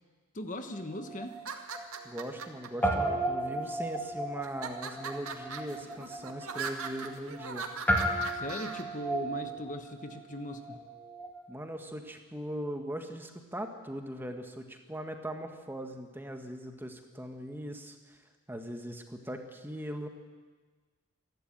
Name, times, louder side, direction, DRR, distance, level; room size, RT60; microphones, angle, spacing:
voice 1, 0.3-1.4 8.3-10.8, left 1 dB, 35° left, 7 dB, 1.1 m, -39 dB
Guitar, 0.7-2.5 2.8-11.5, right 1 dB, 10° left, 2.6 m, -35 dB
sound 1, 1.3-2.7 3.4-3.9 4.4-8.8, right 5 dB, 80° right, 2.0 m, -40 dB
voice 2, 2.0-7.7 11.5-18.2 18.5-20.1, equal, 10° right, 5 dB, 1.6 m, -40 dB
27.0 x 12.0 x 9.0 m, 1.4 s
head